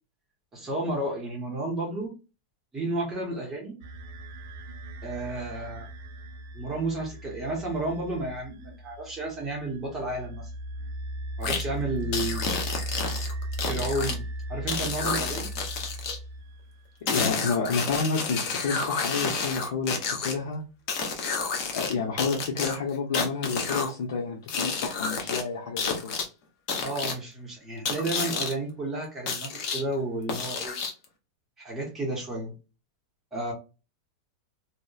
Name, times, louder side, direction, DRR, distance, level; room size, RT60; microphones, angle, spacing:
voice 1, 0.5-2.1 2.7-3.8 5.0-5.9 6.5-10.5 11.4-12.5 13.6-14.2 14.5-15.5 26.8-30.8 31.6-32.5 33.3-33.5, right 2 dB, 15° right, -2 dB, 0.8 m, -32 dB
sound 1, 3.8-16.9, right 1 dB, 55° right, 0.5 m, -37 dB
sound 2, 11.4-11.6 12.1-14.1 14.7-16.2 17.1-20.3 20.9-21.9 22.2-23.9 24.5-25.4 25.8-26.2 26.7-27.1 27.8-28.5 29.3-29.8 30.3-31.0, left 5 dB, 40° left, 0.6 m, -30 dB
voice 2, 17.1-20.6 21.7-26.1, left 4 dB, 75° left, -2 dB, 0.7 m, -30 dB
2.7 x 2.1 x 2.3 m, 0.30 s
supercardioid pair, 165°, 2 cm